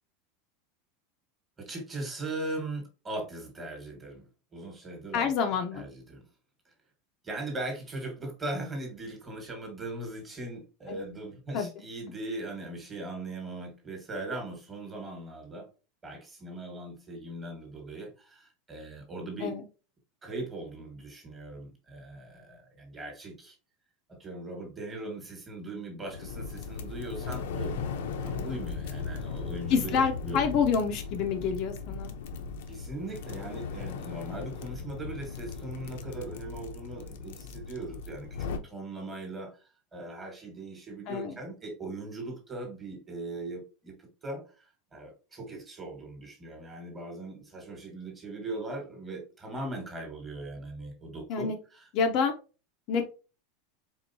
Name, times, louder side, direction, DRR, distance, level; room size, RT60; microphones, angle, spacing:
voice 1, 1.6-5.3 5.7-6.2 7.2-15.7 16.0-19.5 20.2-23.5 24.1-27.8 28.2-30.6 32.7-39.5 39.9-43.9 44.2-44.7 44.9-51.5, right 2 dB, 15° right, 2 dB, 1.4 m, -39 dB
voice 2, 5.1-5.8 10.9-11.0 11.5-11.8 19.4-19.6 28.3-28.5 29.7-32.1 41.1-41.4 51.3-51.6 51.9-52.3 52.9-53.0, left 6 dB, 40° left, 4 dB, 0.6 m, -28 dB
sound 1, 26.1-38.6, left 5 dB, 80° left, 0.7 m, -37 dB
4.5 x 3.7 x 2.7 m, 0.33 s
supercardioid pair, 170°, 0 cm